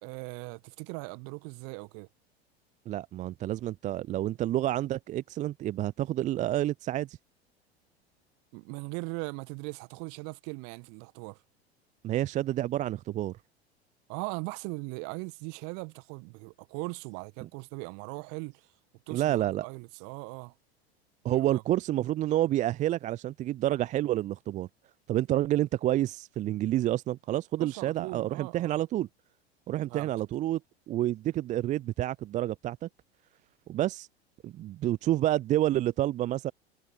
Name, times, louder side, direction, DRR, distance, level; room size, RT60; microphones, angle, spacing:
voice 1, 0.0-2.1 8.5-11.4 14.1-18.7 19.1-20.5 21.3-21.6 27.6-28.8 29.9-30.1, right 35 dB, 45° right, 1.6 m, -39 dB
voice 2, 2.9-7.2 12.0-13.4 19.1-19.7 21.2-24.7 25.1-29.1 29.7-30.6 30.9-32.9 33.7-34.1 34.4-36.5, right 13 dB, 25° right, 0.5 m, -29 dB
figure-of-eight pair, 80°, 32 cm